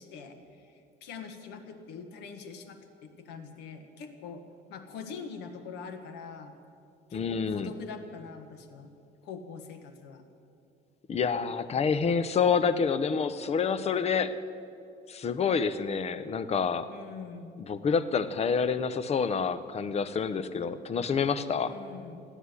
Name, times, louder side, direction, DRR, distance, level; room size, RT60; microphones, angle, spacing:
voice 1, 0.0-4.4 4.7-6.5 7.1-8.9 9.2-10.2 16.9-17.7 21.7-22.2, left 5 dB, 85° left, 6 dB, 1.5 m, -44 dB
voice 2, 7.1-7.7 11.1-14.3 15.1-16.9 17.6-21.7, left 6 dB, 40° left, 13 dB, 0.8 m, -28 dB
14.5 x 10.0 x 9.7 m, 2.5 s
cardioid pair, 110°, 17 cm